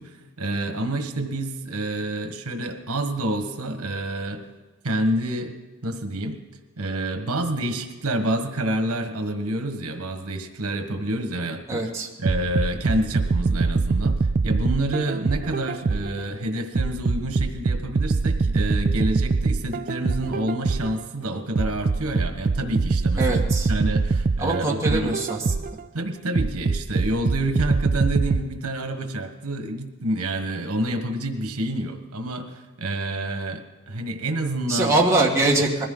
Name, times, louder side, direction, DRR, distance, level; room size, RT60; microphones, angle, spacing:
voice 1, 0.0-4.4 4.8-5.5 5.8-6.4 6.8-11.8 12.2-23.4 23.7-25.2 25.9-35.0, right 1 dB, 85° right, 6 dB, 1.4 m, -28 dB
voice 2, 11.7-12.1 23.2-23.7 24.4-25.5 34.7-35.8, right 2 dB, 15° right, -3 dB, 1.9 m, -23 dB
sound 1, 12.2-16.2 16.8-21.0 21.6-25.8 26.4-28.4, right 4 dB, 40° right, 0.4 m, -23 dB
21.0 x 15.0 x 3.9 m, 1.3 s
head